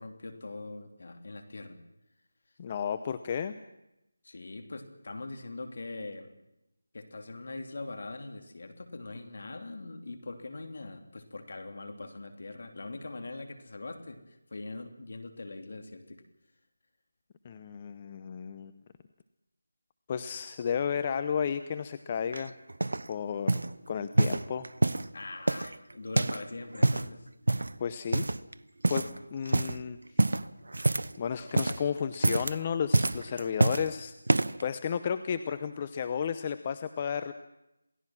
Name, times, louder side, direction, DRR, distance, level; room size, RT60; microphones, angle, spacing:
voice 1, 0.0-1.8 4.2-6.3 6.9-16.2 25.1-27.3 28.9-29.2, left 2 dB, 55° left, 6 dB, 2.9 m, -42 dB
voice 2, 2.6-3.5 17.4-18.7 20.1-22.5 23.1-23.5 23.9-24.7 27.8-28.3 28.9-29.0 29.3-30.0 31.2-34.1 34.6-37.3, left 7 dB, 25° left, 11 dB, 0.7 m, -32 dB
sound 1, 22.3-23.1 23.5-23.7 24.1-25.1 25.5-26.5 26.7-27.1 27.5-27.8 28.1-28.5 28.8-29.2 29.4-29.8 30.2-31.2 31.4-31.8 32.1-32.6 32.9-33.9 34.3-34.6 35.3-35.4, right 2 dB, 75° right, 0.9 m, -26 dB
27.5 x 17.0 x 6.1 m, 0.89 s
figure-of-eight pair, 165°, 0 cm